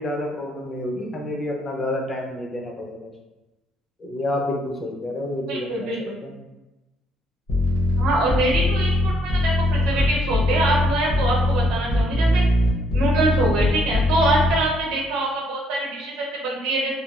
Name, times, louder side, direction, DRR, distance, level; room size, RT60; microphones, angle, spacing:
voice 1, 0.0-3.1 4.0-5.7 6.2-6.3, left 1 dB, 20° left, 1 dB, 0.4 m, -29 dB
voice 2, 5.5-6.2 8.0-12.4 12.9-17.0, right 2 dB, 75° right, -3 dB, 0.7 m, -24 dB
sound 1, 7.5-14.5, left 1 dB, 50° left, 0.7 m, -20 dB
2.9 x 2.2 x 2.2 m, 1.0 s
cardioid pair, 170°, 0 cm